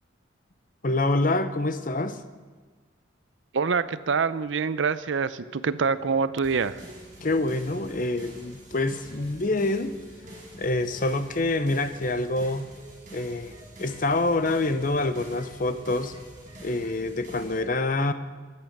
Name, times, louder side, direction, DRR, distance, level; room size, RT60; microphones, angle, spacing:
voice 1, 0.8-2.2 7.2-9.9 10.5-12.7 13.1-16.2 16.6-18.1, left 2 dB, 45° left, 11 dB, 0.7 m, -26 dB
voice 2, 3.5-6.8, right 5 dB, 70° right, 15 dB, 0.5 m, -25 dB
sound 1, 5.4-17.1, right 1 dB, 20° right, 1.5 m, -50 dB
sound 2, 6.4-17.6, right 1 dB, 40° right, 5.4 m, -48 dB
21.0 x 8.7 x 6.0 m, 1.4 s
head